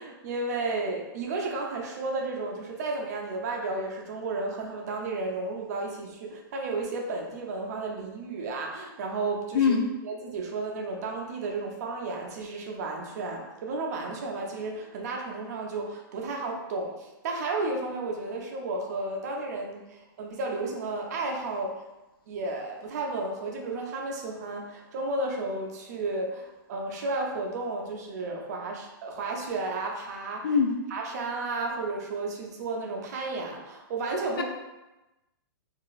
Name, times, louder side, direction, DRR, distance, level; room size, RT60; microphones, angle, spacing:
voice 1, 0.0-9.8 10.0-21.8 22.3-30.6 30.9-34.4, right 3 dB, 45° right, 1 dB, 0.4 m, -33 dB
voice 2, 9.5-9.9 30.4-30.7 34.4-34.5, left 6 dB, 65° left, 3 dB, 0.4 m, -22 dB
2.8 x 2.4 x 2.3 m, 1.0 s
hypercardioid pair, 165°, 13 cm